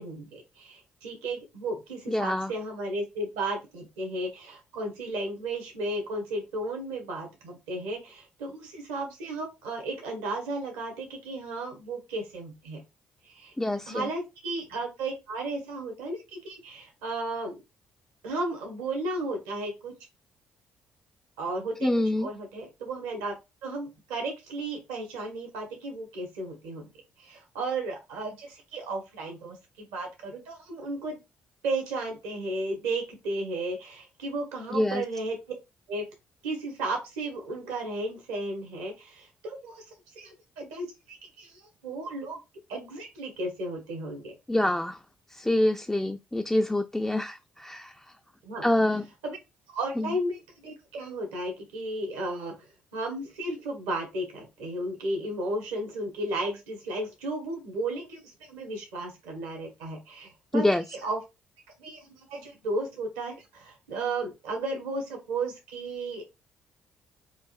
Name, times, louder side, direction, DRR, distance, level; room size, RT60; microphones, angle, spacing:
voice 1, 0.0-12.8 13.2-13.5 13.9-17.6 18.2-19.9 21.4-23.3 23.6-26.9 27.2-31.2 31.6-35.4 35.9-36.0 36.4-39.8 40.2-42.4 42.7-44.3 48.4-48.7 49.2-49.4 49.7-52.5 52.9-61.2 61.8-66.2, right 2 dB, 75° right, 1.0 m, -34 dB
voice 2, 2.1-2.5 13.6-14.1 21.8-22.3 34.7-35.0 44.5-45.0 45.4-47.9 48.6-49.0 50.0-50.1 60.5-60.8, left 1 dB, 10° left, 0.3 m, -26 dB
4.6 x 2.5 x 2.4 m
figure-of-eight pair, 45°, 5 cm